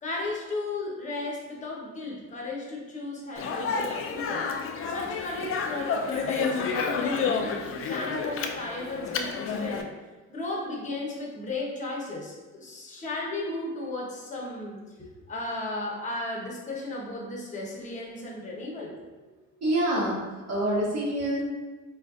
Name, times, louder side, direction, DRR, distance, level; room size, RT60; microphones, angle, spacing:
voice 1, 0.0-4.5 4.9-9.9 10.3-19.3, left 2 dB, 25° left, -2 dB, 0.8 m, -35 dB
Speech, 3.4-9.8, left 5 dB, 45° left, 0.4 m, -30 dB
voice 2, 19.6-20.2 20.5-21.4, right 1 dB, 60° right, -5 dB, 1.3 m, -26 dB
4.0 x 2.5 x 2.4 m, 1.3 s
cardioid pair, 90°, 30 cm